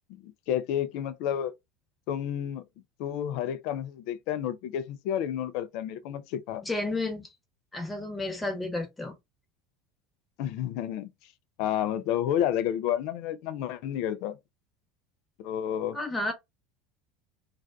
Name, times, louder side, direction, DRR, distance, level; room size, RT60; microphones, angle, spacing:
voice 1, 0.1-1.5 2.1-2.6 3.0-6.6 10.4-11.1 11.6-14.4 15.4-16.0, left 10 dB, 60° left, 0.4 m, -30 dB
voice 2, 6.6-7.3 7.7-9.1 15.9-16.3, left 2 dB, 15° left, 1.0 m, -31 dB
2.4 x 2.2 x 2.3 m
hypercardioid pair, 80°, 0 cm